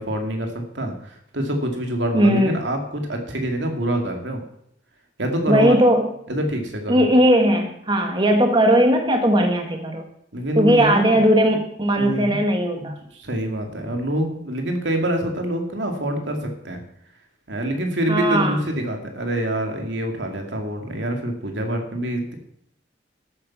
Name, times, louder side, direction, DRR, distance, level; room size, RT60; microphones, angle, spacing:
voice 1, 0.0-4.4 5.2-5.8 6.3-7.1 10.3-11.2 12.0-12.4 12.7-16.8 17.5-22.3, right 1 dB, 80° right, 4 dB, 2.5 m, -26 dB
voice 2, 2.1-2.5 5.5-6.1 6.9-10.1 10.5-12.9 18.1-18.6, right 1 dB, 25° right, 4 dB, 1.4 m, -18 dB
13.5 x 8.7 x 6.1 m, 0.73 s
head